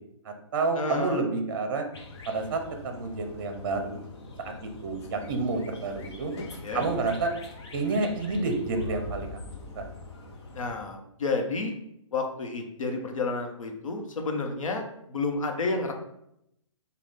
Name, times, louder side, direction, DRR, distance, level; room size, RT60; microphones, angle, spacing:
voice 1, 0.2-1.8 2.3-4.0 4.4-6.3 6.7-7.3 7.7-9.4 9.8-9.9, right 3 dB, 40° right, 5 dB, 0.7 m, -29 dB
voice 2, 0.7-1.3 6.6-6.9 10.5-11.7 12.1-15.9, left 3 dB, 90° left, 3 dB, 1.0 m, -30 dB
sound 1, 1.9-10.8, left 2 dB, 55° left, 0.8 m, -43 dB
5.4 x 2.3 x 3.4 m, 0.77 s
hypercardioid pair, 165°, 17 cm